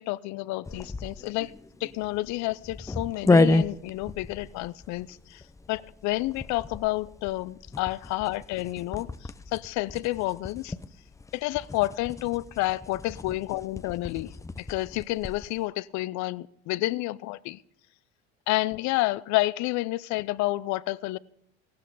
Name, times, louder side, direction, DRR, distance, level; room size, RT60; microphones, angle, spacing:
voice 1, 0.0-1.5 1.8-5.4 5.7-10.7 11.3-17.6 18.5-21.2, left 19 dB, 60° left, 21 dB, 0.5 m, -30 dB
sound 1, 0.6-15.6, left 2 dB, 10° left, 0.5 m, -31 dB
15.5 x 12.0 x 3.9 m, 0.70 s
hypercardioid pair, 75°, 32 cm